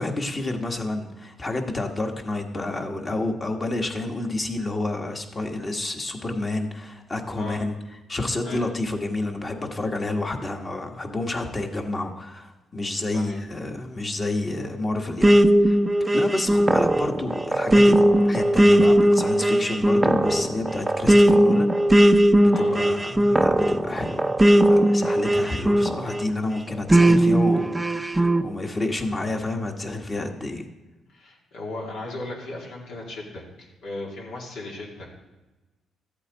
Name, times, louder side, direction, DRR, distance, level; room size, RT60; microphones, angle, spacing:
voice 1, 0.0-7.8 8.1-15.4 15.6-15.8 16.1-21.7 22.4-30.6, left 2 dB, 30° left, 3 dB, 1.5 m, -29 dB
sound 1, 15.2-26.3 26.9-28.4, right 1 dB, 15° right, 0.5 m, -18 dB
voice 2, 31.1-35.1, left 2 dB, 80° left, -2 dB, 2.8 m, -37 dB
14.0 x 8.4 x 4.0 m, 1.1 s
cardioid pair, 90°, 0 cm